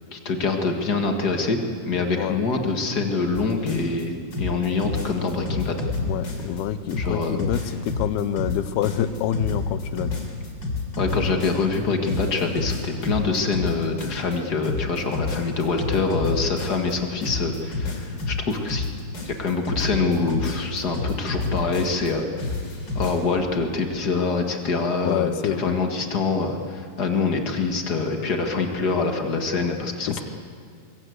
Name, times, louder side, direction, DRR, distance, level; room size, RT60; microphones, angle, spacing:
voice 1, 0.1-5.8 7.0-7.4 11.0-18.9 19.2-22.3 22.9-30.2, left 4 dB, 50° left, 4 dB, 1.1 m, -25 dB
sound 1, 3.3-4.0 4.3-6.6 6.9-11.8 12.0-14.4 14.6-16.9 17.2-22.1 22.4-23.2, left 3 dB, 30° left, 3.5 m, -29 dB
voice 2, 6.0-10.2 25.0-25.8 29.5-29.8 30.1-30.2, left 10 dB, 75° left, 12 dB, 2.7 m, -27 dB
24.5 x 23.5 x 8.0 m, 2.3 s
omnidirectional pair, 4.7 m